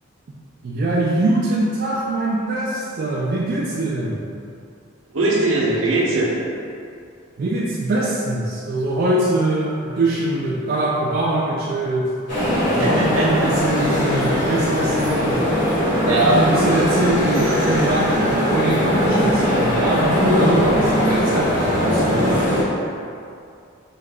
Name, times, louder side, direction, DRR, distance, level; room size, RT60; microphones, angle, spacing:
voice 1, 0.6-4.2 7.4-12.1 12.8-15.4 16.1-22.6, right 1 dB, 50° right, -5 dB, 0.3 m, -23 dB
voice 2, 5.1-6.3 12.8-13.6 16.1-16.4, right 2 dB, 80° right, -4 dB, 0.7 m, -20 dB
sound 1, 12.3-22.6, equal, 60° left, 1.2 m, -20 dB
3.7 x 2.2 x 3.6 m, 2.4 s
head